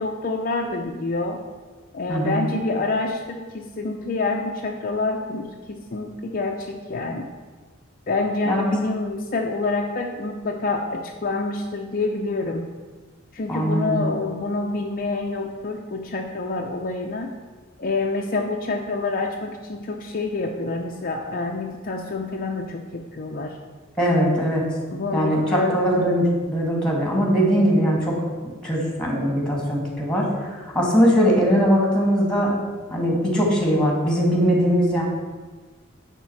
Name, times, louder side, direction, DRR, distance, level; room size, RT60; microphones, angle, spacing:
voice 1, 0.0-1.4 1.9-7.3 8.1-12.6 13.3-17.3 17.8-23.5 24.9-25.8, left 3 dB, 45° left, 2 dB, 0.6 m, -27 dB
voice 2, 2.1-2.4 8.5-8.6 13.5-14.0 24.0-24.6 25.1-28.2 28.6-32.5 32.9-35.0, equal, 5° left, -1 dB, 2.3 m, -20 dB
10.5 x 3.7 x 7.2 m, 1.4 s
head